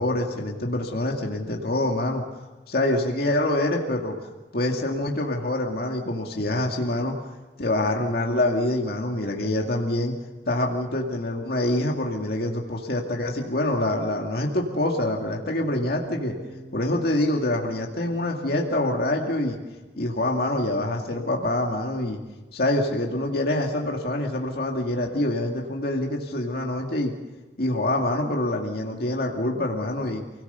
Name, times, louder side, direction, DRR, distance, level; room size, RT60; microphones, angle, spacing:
voice 1, 0.0-2.2 2.7-4.2 4.5-7.2 7.6-10.1 10.5-16.3 16.7-19.6 20.0-22.2 22.5-27.1 27.6-30.2, left 1 dB, 60° left, 0 dB, 2.2 m, -25 dB
Bass guitar, 15.9-22.1, right 1 dB, 85° right, 4.9 m, -47 dB
28.5 x 18.0 x 6.9 m, 1.2 s
head